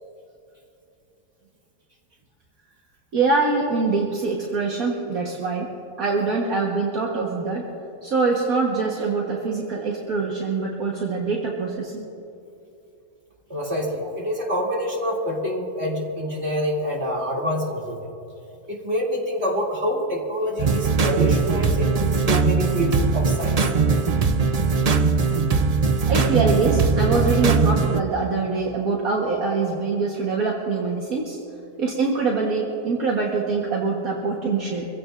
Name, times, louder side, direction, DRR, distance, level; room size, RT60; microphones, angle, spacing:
voice 1, 3.1-5.7 6.0-7.6 8.0-12.1 26.1-31.4 31.8-34.9, right 4 dB, 65° right, -2 dB, 1.8 m, -24 dB
voice 2, 13.5-18.0 18.7-23.6, equal, 45° right, -3 dB, 3.0 m, -26 dB
sound 1, 20.6-28.0, right 4 dB, 85° right, 0.3 m, -20 dB
24.5 x 16.0 x 2.5 m, 2.8 s
omnidirectional pair, 1.6 m